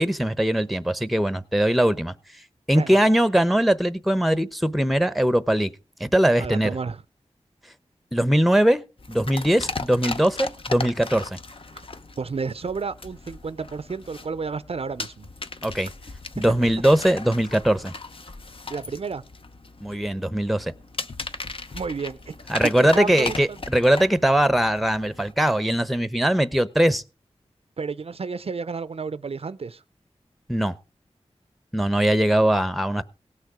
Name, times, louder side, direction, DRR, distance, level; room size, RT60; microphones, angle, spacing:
voice 1, 0.0-2.1 2.7-5.7 6.0-6.7 8.1-8.8 9.1-11.4 15.6-15.9 16.4-17.9 19.8-20.7 22.5-27.0 30.5-30.7 31.7-33.0, right 1 dB, ahead, 0.8 m, -21 dB
voice 2, 6.4-7.0 11.7-11.8 12.2-15.3 18.7-19.2 21.7-22.4 22.6-23.6 27.8-29.8, right 5 dB, 60° right, 0.5 m, -31 dB
sound 1, 9.0-25.3, left 3 dB, 50° left, 0.9 m, -37 dB
18.0 x 6.4 x 4.8 m
wide cardioid pair, 65°, 11 cm